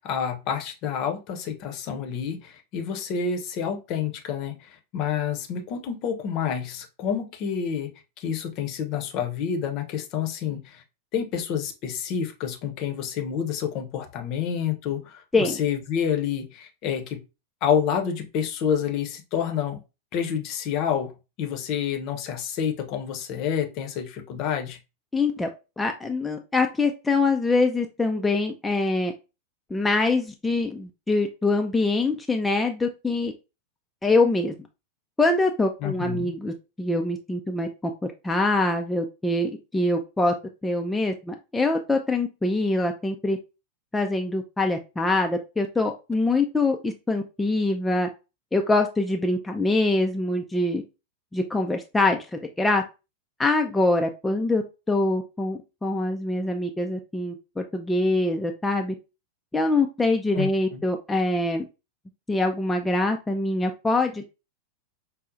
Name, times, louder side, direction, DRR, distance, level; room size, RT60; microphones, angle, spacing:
voice 1, 0.0-7.9 8.2-10.8 11.1-17.2 17.6-19.8 20.1-24.8 35.8-36.3 60.3-60.8, left 8 dB, 40° left, 0.7 m, -28 dB
voice 2, 25.1-25.5 25.8-29.1 29.7-33.3 34.0-34.5 35.2-37.7 38.0-40.3 40.6-43.4 43.9-48.1 48.5-50.8 51.3-52.8 53.4-58.9 59.5-61.6 62.3-64.2, left 2 dB, 10° left, 0.3 m, -24 dB
5.3 x 2.0 x 2.5 m
figure-of-eight pair, 90°, 0 cm